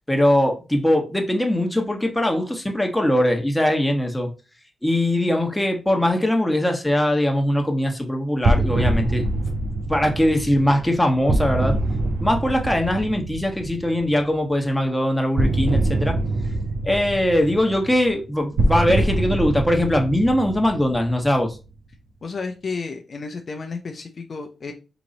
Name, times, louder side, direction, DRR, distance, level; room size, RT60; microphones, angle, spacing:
voice 1, 0.1-4.3 4.8-9.2 9.9-11.8 12.2-16.2 16.8-21.6, left 1 dB, 10° left, 1.3 m, -21 dB
sound 1, 8.4-14.2 15.4-21.6, right 2 dB, 75° right, 0.9 m, -24 dB
voice 2, 22.2-24.7, left 4 dB, 60° left, 0.6 m, -32 dB
3.9 x 2.9 x 4.0 m
supercardioid pair, 50°, 0 cm